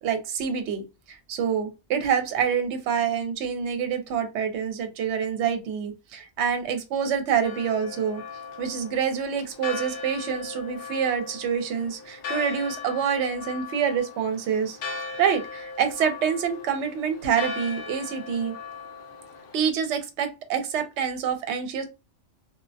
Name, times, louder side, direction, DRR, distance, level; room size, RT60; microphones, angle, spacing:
voice 1, 0.0-8.2 8.6-14.8 15.2-18.5 19.5-21.8, right 7 dB, 70° right, 0.9 m, -27 dB
Church bell, 7.4-19.6, left 4 dB, 60° left, 0.7 m, -38 dB
2.3 x 2.0 x 2.6 m
omnidirectional pair, 1.3 m